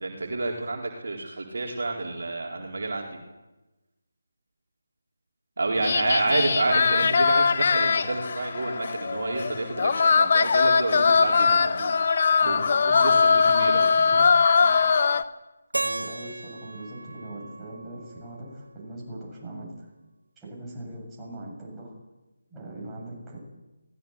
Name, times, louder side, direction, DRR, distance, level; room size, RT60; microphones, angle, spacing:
voice 1, 0.0-3.2 5.6-11.9 12.5-12.6 13.0-13.8 14.6-14.8, right 2 dB, 55° right, 0 dB, 4.2 m, -29 dB
voice 2, 5.7-7.1 12.4-14.3 15.8-19.9 20.4-22.0 22.5-23.4, right 1 dB, 10° right, -5 dB, 8.0 m, -40 dB
sound 1, 5.8-15.2, left 5 dB, 40° left, 1.1 m, -21 dB
Keyboard (musical), 15.7-18.7, right 2 dB, 70° right, 1.5 m, -35 dB
23.0 x 18.5 x 8.1 m, 1.1 s
figure-of-eight pair, 155°, 0 cm